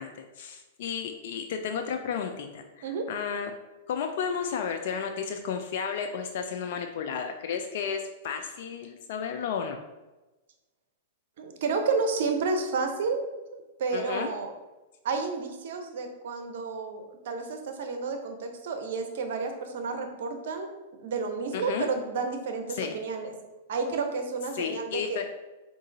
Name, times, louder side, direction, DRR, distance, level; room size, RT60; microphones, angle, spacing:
voice 1, 0.0-3.5 3.9-9.8 13.9-14.3 21.5-21.9 22.7-23.0 24.5-25.2, left 7 dB, 60° left, 5 dB, 0.3 m, -33 dB
voice 2, 11.4-13.2 13.5-14.5 15.0-23.3 23.7-25.2, right 4 dB, 65° right, 5 dB, 0.6 m, -31 dB
3.7 x 2.5 x 3.9 m, 1.1 s
hypercardioid pair, 110°, 0 cm